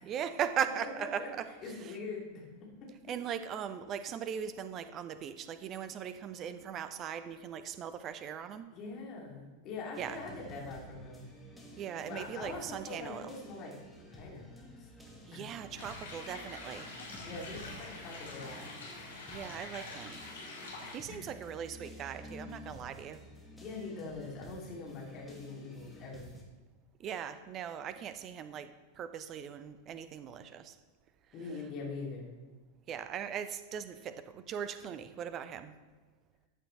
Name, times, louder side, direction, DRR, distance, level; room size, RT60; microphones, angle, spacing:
voice 1, 0.1-1.5 3.1-8.7 10.0-10.2 11.8-13.3 15.3-16.9 19.3-20.2 20.9-23.2 27.0-30.8 32.9-35.7, right 8 dB, 30° right, 11 dB, 0.7 m, -39 dB
voice 2, 0.8-1.3 1.6-2.9 8.7-11.3 12.1-13.7 14.1-14.9 15.3-15.4 17.2-19.3 21.1-21.5 23.6-26.3 31.3-32.4, left 3 dB, 35° left, -2 dB, 2.7 m, -43 dB
sound 1, 9.9-26.4, left 1 dB, 5° left, 1.8 m, -51 dB
sound 2, 15.8-20.9, left 3 dB, 65° left, 3.1 m, -46 dB
14.0 x 8.7 x 3.2 m, 1.3 s
figure-of-eight pair, 90°, 0 cm